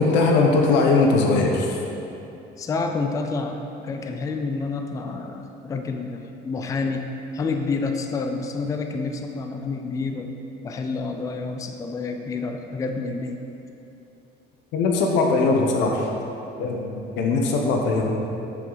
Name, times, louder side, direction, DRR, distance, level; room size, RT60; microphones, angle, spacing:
voice 1, 0.0-1.8 14.7-16.1 16.6-18.2, left 3 dB, 75° left, 1 dB, 0.8 m, -20 dB
voice 2, 2.6-7.1 7.3-10.3 10.6-13.4, left 4 dB, 20° left, 4 dB, 0.4 m, -28 dB
7.6 x 6.9 x 3.9 m, 2.9 s
cardioid pair, 170°, 19 cm